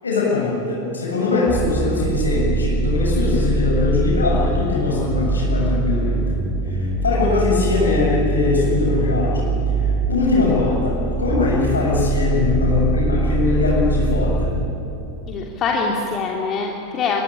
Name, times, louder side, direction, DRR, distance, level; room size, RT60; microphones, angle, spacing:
voice 1, 0.0-6.3 6.6-14.5, left 4 dB, 75° left, -3 dB, 7.3 m, -21 dB
sound 1, 1.5-14.7, right 3 dB, 25° right, 3.6 m, -22 dB
voice 2, 15.3-17.2, left 4 dB, 30° left, -1 dB, 2.9 m, -24 dB
24.0 x 23.5 x 9.9 m, 3.0 s
figure-of-eight pair, 90°, 0 cm